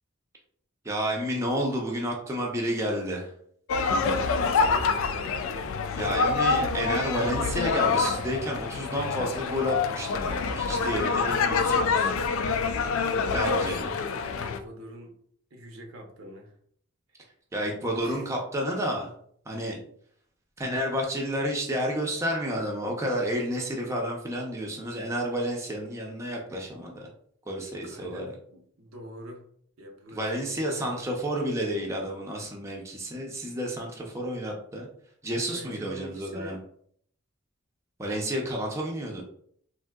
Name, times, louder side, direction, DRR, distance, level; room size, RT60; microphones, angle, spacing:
voice 1, 0.8-3.3 6.0-12.1 13.3-13.9 17.5-19.1 19.5-19.8 20.6-27.1 27.5-28.3 30.1-34.9 35.2-36.6 38.0-39.2, equal, 15° right, -1 dB, 0.5 m, -30 dB
sound 1, 3.7-14.6, left 4 dB, 80° left, 0.3 m, -26 dB
voice 2, 3.8-5.4 12.9-13.6 13.9-15.1 15.5-16.5 18.0-18.3 27.9-29.4 29.8-31.1 35.5-36.6, equal, 80° right, 2 dB, 0.7 m, -44 dB
3.6 x 2.6 x 2.2 m, 0.63 s
head